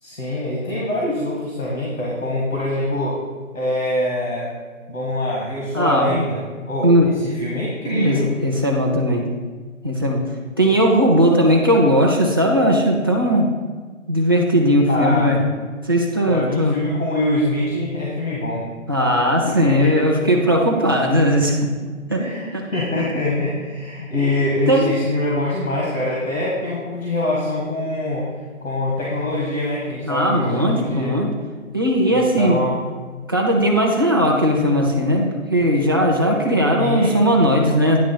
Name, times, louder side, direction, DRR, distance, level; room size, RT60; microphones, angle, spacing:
voice 1, 0.0-3.2 3.5-4.5 4.9-6.4 6.7-8.3 14.9-15.5 16.3-18.6 19.6-20.1 20.4-20.5 22.2-28.3 28.6-31.1 32.1-32.8 36.8-37.2, left 1 dB, 85° left, -4 dB, 2.1 m, -24 dB
voice 2, 5.7-6.3 6.8-7.1 7.9-9.2 9.8-10.2 10.6-13.5 14.1-15.4 15.8-16.8 18.9-21.6 22.1-22.2 24.7-24.9 30.0-31.3 31.7-32.6 33.3-38.0, equal, 20° right, -2 dB, 0.5 m, -18 dB
9.6 x 3.5 x 5.9 m, 1.4 s
figure-of-eight pair, 150°, 40 cm